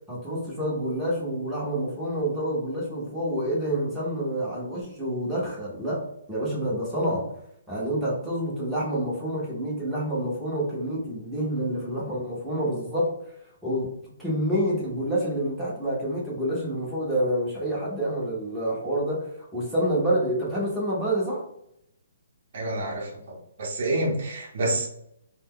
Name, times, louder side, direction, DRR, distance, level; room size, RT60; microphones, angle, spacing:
voice 1, 0.1-6.0 6.3-7.3 7.7-13.1 13.6-13.9 14.2-21.4, right 1 dB, 5° right, -7 dB, 0.8 m, -28 dB
voice 2, 22.5-24.9, right 1 dB, 40° right, -3 dB, 0.8 m, -28 dB
2.6 x 2.2 x 3.5 m, 0.75 s
hypercardioid pair, 175°, 0 cm